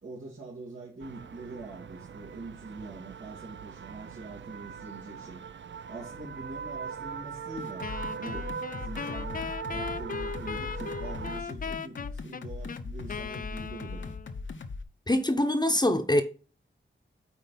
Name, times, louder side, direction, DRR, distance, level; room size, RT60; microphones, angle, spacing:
voice 1, 0.0-5.4 5.9-7.9 8.2-14.1, right 3 dB, 85° right, 2.4 m, -44 dB
sound 1, 1.0-11.4, right 6 dB, 65° right, 0.5 m, -41 dB
sound 2, 7.6-14.8, left 4 dB, 65° left, 0.9 m, -39 dB
Wind instrument woodwind instrument, 7.8-14.4, left 6 dB, 45° left, 0.4 m, -38 dB
voice 2, 15.1-16.2, left 1 dB, 20° left, 0.8 m, -24 dB
8.7 x 4.5 x 3.9 m
wide cardioid pair, 70°, 21 cm